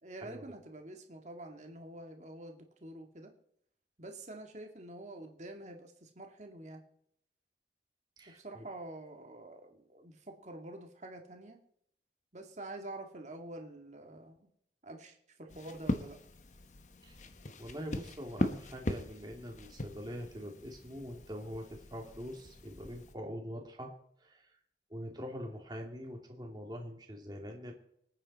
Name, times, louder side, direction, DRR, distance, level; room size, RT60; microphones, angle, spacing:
voice 1, 0.0-3.3 4.0-6.8 8.3-11.6 12.3-14.5 14.8-16.2, right 1 dB, 40° right, 3 dB, 2.2 m, -47 dB
voice 2, 8.2-8.7 17.0-17.2 17.6-23.9 24.2-24.5 24.9-27.7, equal, 25° right, 1 dB, 2.5 m, -44 dB
sound 1, 15.5-23.1, left 1 dB, 45° left, 1.2 m, -40 dB
25.5 x 9.1 x 4.2 m, 0.71 s
head